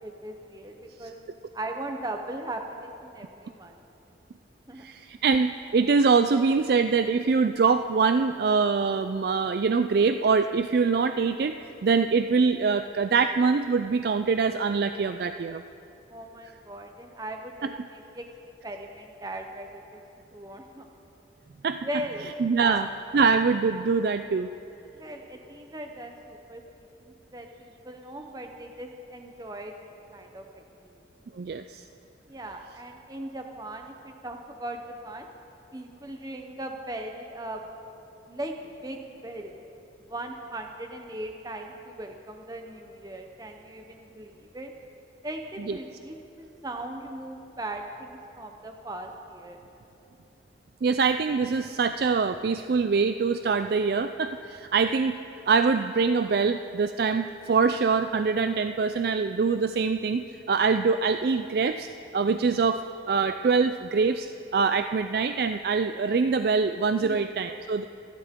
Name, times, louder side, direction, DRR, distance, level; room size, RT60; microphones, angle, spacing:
voice 1, 0.0-1.2 1.5-3.8 4.7-4.9 16.1-18.3 18.6-20.0 20.3-20.9 21.8-22.9 24.9-30.4 30.8-31.0 32.3-35.3 35.7-37.6 38.3-38.5 38.8-39.5 40.1-44.7 45.2-46.2 46.6-49.6 67.0-67.3, right 1 dB, 20° right, 3 dB, 0.8 m, -38 dB
voice 2, 4.8-15.6 17.6-17.7 21.6-21.8 22.4-22.9 23.1-24.5 31.4-31.8 45.7-45.8 50.8-55.2 55.5-61.9 62.1-64.3 64.5-67.8, right 5 dB, 55° right, 9 dB, 0.3 m, -24 dB
26.5 x 12.0 x 3.7 m, 2.9 s
head